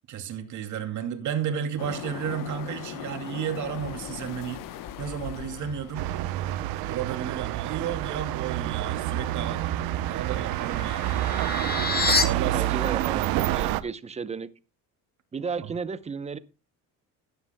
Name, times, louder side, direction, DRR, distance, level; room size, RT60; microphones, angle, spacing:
voice 1, 0.1-6.1 6.8-9.7 10.1-11.2 12.2-13.6, right 8 dB, 55° right, 2.5 m, -33 dB
sound 1, 1.8-6.7, left 11 dB, 65° left, 1.0 m, -39 dB
sound 2, 5.9-13.8, right 14 dB, 80° right, 0.8 m, -28 dB
sound 3, 10.0-12.2, left 4 dB, 25° left, 1.6 m, -28 dB
voice 2, 12.4-14.5 15.3-16.4, right 5 dB, 20° right, 0.7 m, -34 dB
16.5 x 11.0 x 2.2 m
cardioid pair, 125°, 36 cm